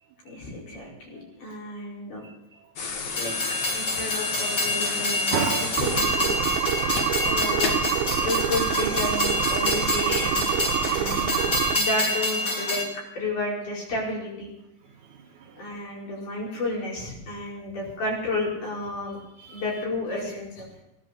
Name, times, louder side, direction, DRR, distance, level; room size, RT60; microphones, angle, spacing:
voice 1, 0.3-2.2 3.2-3.4 3.7-5.4 5.8-6.3 7.2-7.9 8.2-11.4 11.7-14.5 15.6-19.2 19.5-20.8, left 2 dB, 55° left, -3 dB, 5.9 m, -32 dB
voice 2, 2.2-3.3 5.3-5.8 14.8-15.8 19.4-19.6, right 6 dB, 65° right, 2 dB, 2.6 m, -34 dB
sound 1, 2.8-7.9 9.3-9.4, left 5 dB, 90° left, 0.9 m, -32 dB
Train, 3.1-12.8, left 2 dB, 30° left, 2.1 m, -27 dB
sound 2, 5.8-11.8, right 11 dB, 85° right, 2.7 m, -27 dB
17.5 x 11.0 x 6.8 m, 0.87 s
omnidirectional pair, 4.3 m